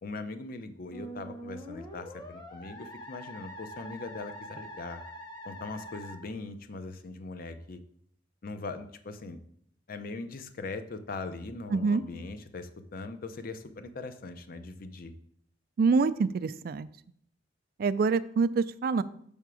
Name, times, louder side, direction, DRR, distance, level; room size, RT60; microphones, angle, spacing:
voice 1, 0.0-5.0 5.4-7.8 8.4-9.4 9.9-15.1, left 3 dB, 50° left, 10 dB, 0.6 m, -40 dB
Musical instrument, 0.9-6.2, equal, 25° left, 1.0 m, -44 dB
voice 2, 11.7-12.0 15.8-16.9 17.8-19.0, right 4 dB, 55° right, 15 dB, 0.3 m, -26 dB
6.6 x 3.6 x 6.1 m, 0.67 s
head